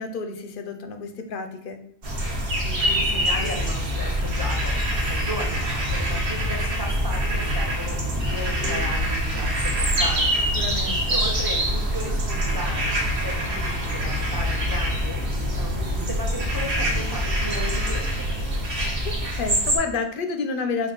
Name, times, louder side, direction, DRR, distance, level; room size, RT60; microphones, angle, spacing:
voice 1, 0.0-1.8 10.5-11.2 19.0-20.9, left 4 dB, 60° left, 7 dB, 0.6 m, -30 dB
sound 1, 2.0-19.8, equal, 60° right, 1.2 m, -25 dB
voice 2, 2.6-10.5 11.1-18.1, equal, 20° right, 0 dB, 0.7 m, -35 dB
5.4 x 2.4 x 3.9 m, 0.66 s
omnidirectional pair, 1.1 m